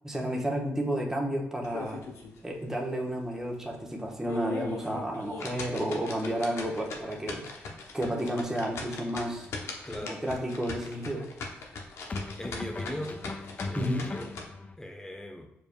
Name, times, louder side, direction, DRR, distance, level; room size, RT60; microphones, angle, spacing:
voice 1, 0.0-2.0 2.4-7.5 7.9-9.5 10.0-11.3 13.7-14.1, equal, 10° right, -1 dB, 1.1 m, -31 dB
sound 1, 1.6-2.4 2.8-2.9 3.4-3.5 4.1-14.5, left 3 dB, 75° left, 0.8 m, -40 dB
sound 2, 9.4-9.7 12.1-14.8, left 3 dB, 30° left, 0.4 m, -39 dB
voice 2, 9.8-10.2 12.4-13.3 13.7-14.3 14.8-15.5, left 1 dB, 15° left, 4 dB, 0.8 m, -39 dB
4.8 x 4.7 x 2.2 m, 0.85 s
cardioid pair, 65°, 5 cm